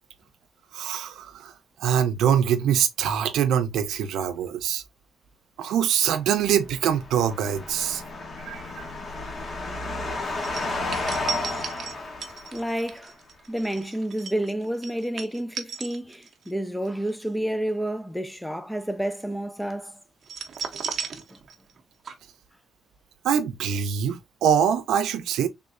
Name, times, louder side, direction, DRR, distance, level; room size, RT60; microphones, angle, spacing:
voice 1, 0.7-1.5 1.8-4.8 5.6-8.0 8.5-8.6 23.2-25.5, right 9 dB, 85° right, 0.5 m, -24 dB
sound 1, 6.6-12.9, left 2 dB, 35° left, 1.0 m, -32 dB
sound 2, 10.4-16.5 16.8-17.1 20.2-21.8 22.0-22.1, right 6 dB, 45° right, 0.6 m, -35 dB
voice 2, 12.5-13.1 13.5-20.0 21.3-21.4, right 1 dB, 5° left, 0.4 m, -30 dB
3.5 x 3.1 x 2.4 m
cardioid pair, 140°, 0 cm